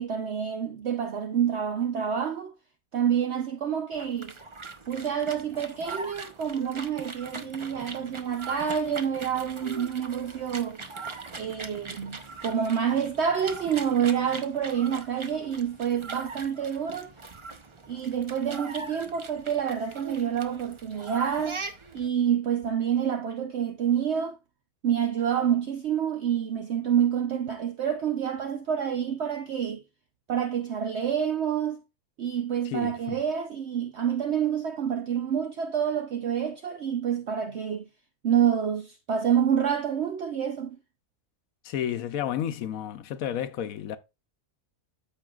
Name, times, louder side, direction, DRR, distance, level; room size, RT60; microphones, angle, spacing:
voice 1, 0.0-2.5 2.9-4.3 4.9-10.8 11.4-17.1 17.9-21.6 21.9-24.4 24.8-29.8 30.3-31.8 32.2-37.9 38.2-40.8, right 8 dB, 60° right, 0.9 m, -28 dB
sound 1, 3.9-22.1, right 4 dB, 30° right, 0.6 m, -41 dB
voice 2, 32.6-33.2 41.6-44.0, left 10 dB, 75° left, 1.1 m, -31 dB
13.5 x 5.3 x 2.4 m
omnidirectional pair, 1.5 m